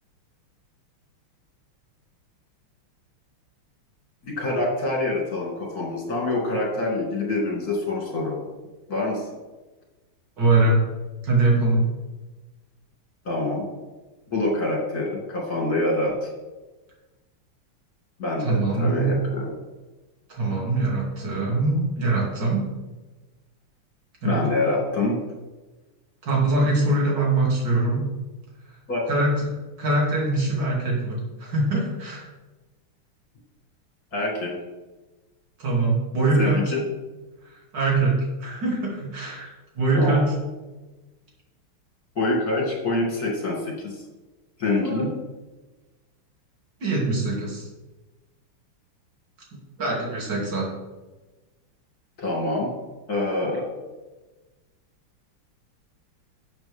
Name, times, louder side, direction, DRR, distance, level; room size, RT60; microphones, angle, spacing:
voice 1, 4.2-8.4 8.9-9.3 13.2-13.7 14.3-16.3 18.2-19.5 24.2-25.2 28.9-29.0 34.1-34.5 36.4-36.8 39.9-40.2 42.1-44.0 44.6-45.1 52.2-52.7 53.1-53.8, left 2 dB, 45° left, -2 dB, 2.9 m, -26 dB
voice 2, 10.4-10.9 11.2-11.8 18.4-19.1 20.3-22.6 24.2-24.4 26.2-28.1 29.1-32.3 35.6-36.7 37.4-40.3 44.8-45.1 46.8-47.7 49.8-50.7, right 2 dB, 55° right, -3 dB, 3.3 m, -23 dB
11.5 x 7.5 x 3.5 m, 1.2 s
omnidirectional pair, 2.4 m